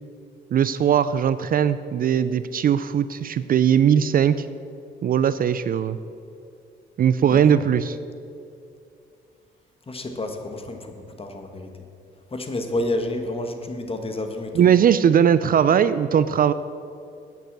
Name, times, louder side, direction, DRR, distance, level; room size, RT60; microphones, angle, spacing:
voice 1, 0.5-4.5 5.0-6.0 7.0-8.0 14.5-16.5, right 8 dB, 45° right, 14 dB, 0.4 m, -19 dB
voice 2, 9.9-11.7 12.3-14.7, left 1 dB, 30° left, 5 dB, 1.4 m, -30 dB
9.2 x 8.1 x 7.4 m, 2.6 s
cardioid pair, 90°, 20 cm